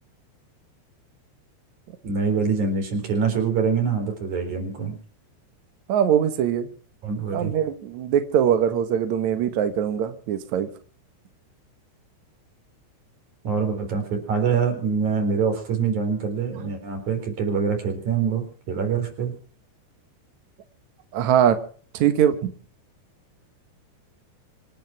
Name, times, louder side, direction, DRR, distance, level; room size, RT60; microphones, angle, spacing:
voice 1, 2.0-5.0 7.0-7.5 13.4-19.3, right 5 dB, 40° right, 4 dB, 5.0 m, -25 dB
voice 2, 5.9-6.7 7.3-10.7 21.1-21.6 21.9-22.5, right 9 dB, 85° right, 9 dB, 1.6 m, -22 dB
25.5 x 9.1 x 6.0 m, 0.43 s
omnidirectional pair, 5.5 m